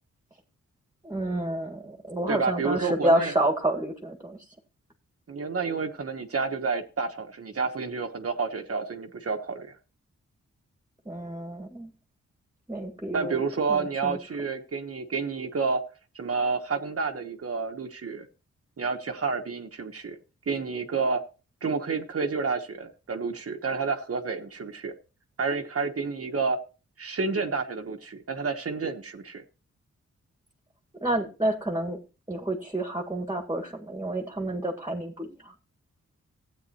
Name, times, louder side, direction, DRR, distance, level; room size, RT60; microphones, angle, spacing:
voice 1, 1.0-4.5 11.1-11.9 12.7-13.4 13.7-14.2 31.0-32.0 32.3-35.5, right 1 dB, 15° right, 3 dB, 1.7 m, -29 dB
voice 2, 2.3-3.3 5.3-9.8 13.1-15.8 16.1-18.3 18.8-20.2 20.5-21.2 21.6-24.9 25.4-26.6 27.0-29.4, right 4 dB, 50° right, 4 dB, 1.2 m, -29 dB
15.5 x 8.9 x 2.9 m, 0.33 s
wide cardioid pair, 100°, 29 cm